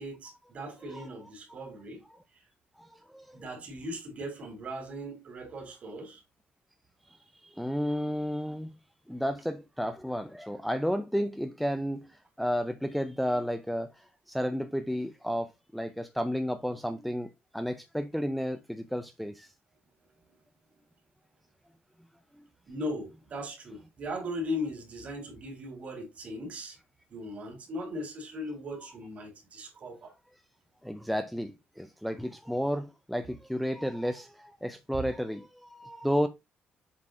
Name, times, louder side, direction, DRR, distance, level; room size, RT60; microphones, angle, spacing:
voice 1, 0.0-2.0 3.3-6.2 22.7-26.8 27.1-30.1, left 1 dB, 45° right, 3.0 m, -38 dB
voice 2, 2.8-3.4 7.4-8.7 9.1-17.3 17.5-19.5 30.8-36.3, equal, ahead, 0.5 m, -32 dB
7.5 x 4.0 x 3.7 m
cardioid pair, 145°, 3 cm